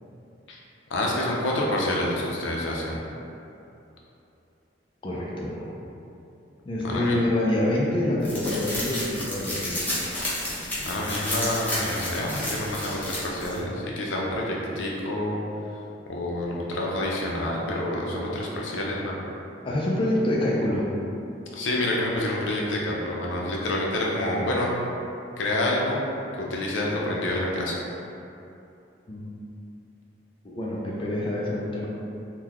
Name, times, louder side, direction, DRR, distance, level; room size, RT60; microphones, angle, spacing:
voice 1, 0.9-3.0 6.8-7.2 10.8-15.4 16.1-19.3 21.5-24.7 25.4-26.0 26.4-27.8, left 1 dB, 85° left, -3 dB, 0.5 m, -28 dB
voice 2, 5.0-5.7 6.7-10.0 19.6-21.0 29.1-29.3 30.4-31.9, left 1 dB, 30° left, -4 dB, 0.4 m, -26 dB
sound 1, 8.2-13.6, left 1 dB, 10° left, 0.7 m, -31 dB
3.7 x 2.2 x 2.9 m, 2.7 s
head